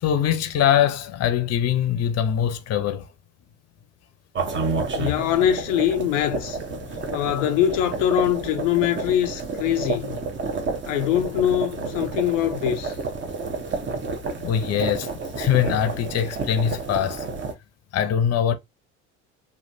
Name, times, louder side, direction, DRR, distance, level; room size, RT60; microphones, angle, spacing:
voice 1, 0.0-3.1 6.9-7.1 14.4-15.1 15.4-17.2 17.9-18.5, left 9 dB, 40° left, 0.7 m, -22 dB
sound 1, 4.4-17.5, right 3 dB, 30° right, 1.0 m, -30 dB
voice 2, 4.9-6.6 7.1-10.1 10.8-12.9, left 11 dB, 80° left, 0.6 m, -23 dB
3.2 x 2.5 x 2.7 m
hypercardioid pair, 70°, 38 cm